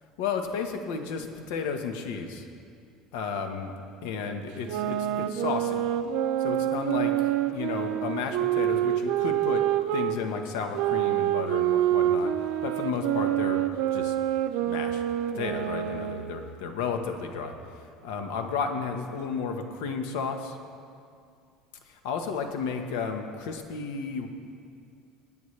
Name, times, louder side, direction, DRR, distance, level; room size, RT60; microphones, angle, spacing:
voice 1, 0.2-2.4 3.1-3.7 4.0-5.8 6.4-9.7 9.9-12.3 12.6-13.7 13.9-14.1 14.6-15.0 15.3-17.5 18.0-20.6 21.9-24.3, left 5 dB, 85° left, 5 dB, 1.2 m, -33 dB
sound 1, 4.5-10.2 10.7-16.3, right 12 dB, 70° right, 0.6 m, -27 dB
24.0 x 9.2 x 3.3 m, 2.4 s
cardioid pair, 165°, 0 cm